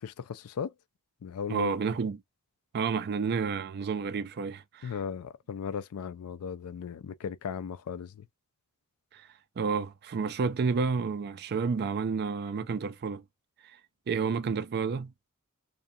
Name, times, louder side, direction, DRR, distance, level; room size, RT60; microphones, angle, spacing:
voice 1, 0.0-0.7 1.2-1.7 4.8-8.3, left 7 dB, 70° left, 0.4 m, -37 dB
voice 2, 1.5-2.2 2.7-4.9 9.1-9.3 9.6-13.2 14.1-15.1, right 5 dB, 45° right, 0.4 m, -30 dB
2.5 x 2.3 x 2.6 m
head